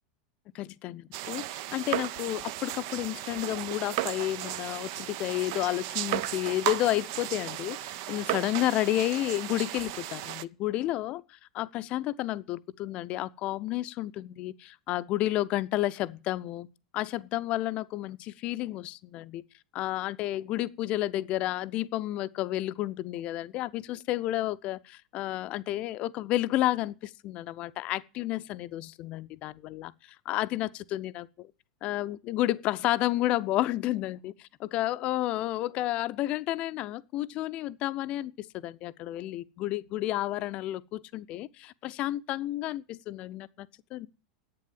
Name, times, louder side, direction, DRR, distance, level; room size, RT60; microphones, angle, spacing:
voice 1, 0.5-16.7 16.9-19.4 19.7-31.5 31.8-34.3 34.7-44.1, left 15 dB, 40° left, 0.6 m, -31 dB
Water drops into a bucket (slow), 1.1-10.4, right 14 dB, 50° right, 0.5 m, -35 dB
10.5 x 8.9 x 7.4 m
figure-of-eight pair, 85°, 3 cm